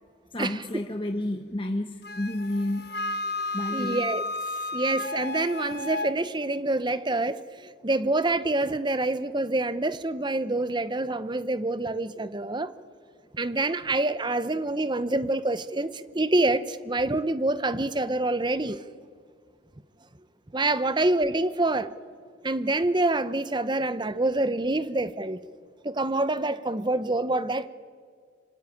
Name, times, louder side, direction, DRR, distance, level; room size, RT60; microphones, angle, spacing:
voice 1, 0.3-3.2 3.5-4.1 20.8-21.0, left 1 dB, 25° left, 5 dB, 1.1 m, -31 dB
Wind instrument woodwind instrument, 2.0-6.1, left 2 dB, 50° left, 1.1 m, -32 dB
voice 2, 3.7-4.2 4.7-12.7 13.3-18.8 20.5-21.9 22.4-25.4 25.8-27.7, right 2 dB, 20° right, 13 dB, 0.8 m, -26 dB
25.5 x 25.0 x 9.2 m, 2.1 s
head